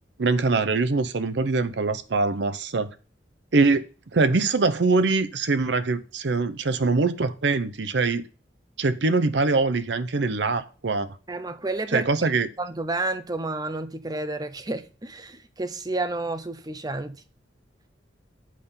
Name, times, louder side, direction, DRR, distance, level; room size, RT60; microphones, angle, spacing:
voice 1, 0.2-2.9 3.5-3.8 4.1-8.2 8.8-11.2 11.9-12.5, right 3 dB, 70° right, 0.7 m, -23 dB
voice 2, 11.3-12.1 12.6-17.2, right 2 dB, 20° right, 0.7 m, -30 dB
7.6 x 5.6 x 6.8 m
head